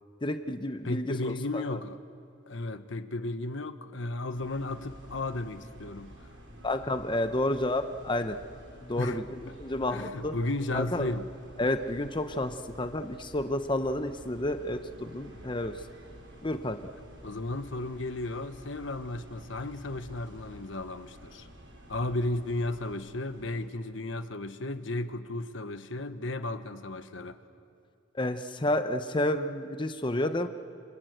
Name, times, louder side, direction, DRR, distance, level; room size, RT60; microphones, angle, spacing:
voice 1, 0.2-1.6 6.6-8.4 8.8-10.3 10.7-11.1 11.6-15.7 16.4-16.8 28.2-30.5, left 1 dB, 25° left, 0.9 m, -30 dB
voice 2, 0.8-2.0 2.5-6.3 9.0-9.2 9.5-9.6 9.9-11.3 17.2-21.5 21.9-27.4, left 2 dB, 75° left, 1.1 m, -34 dB
sound 1, 4.3-23.7, equal, 75° right, 7.3 m, -50 dB
28.0 x 25.5 x 8.0 m
head